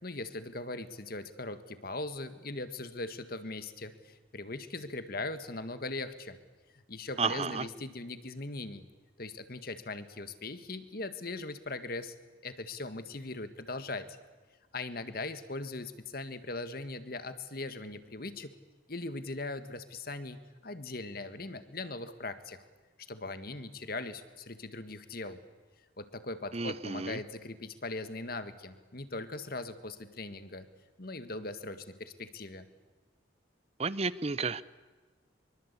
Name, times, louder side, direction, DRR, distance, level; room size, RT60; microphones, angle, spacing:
voice 1, 0.0-6.4 6.7-8.9 9.2-12.1 12.4-14.2 14.7-18.5 18.9-22.6 23.1-25.4 26.0-30.7 31.0-32.7, left 2 dB, 50° left, 10 dB, 1.8 m, -40 dB
voice 2, 7.2-7.7 26.5-27.2 33.8-34.6, right 4 dB, 35° right, 17 dB, 0.8 m, -32 dB
25.0 x 23.5 x 8.5 m, 1.3 s
head